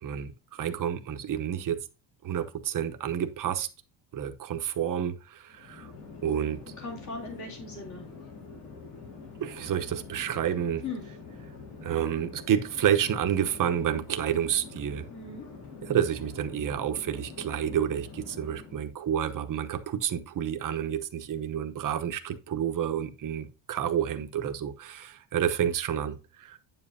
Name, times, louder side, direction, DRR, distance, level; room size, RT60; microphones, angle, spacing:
voice 1, 0.0-1.8 2.2-3.7 4.1-5.9 6.2-6.6 9.4-10.8 11.8-15.1 15.8-26.6, right 9 dB, 40° right, 0.9 m, -29 dB
Chatter / Fixed-wing aircraft airplane, 5.5-18.9, left 4 dB, 80° left, 3.9 m, -46 dB
voice 2, 6.8-8.0 10.8-11.0 15.1-15.4, left 3 dB, 35° left, 2.9 m, -38 dB
9.2 x 7.3 x 2.7 m
cardioid pair, 160°, 49 cm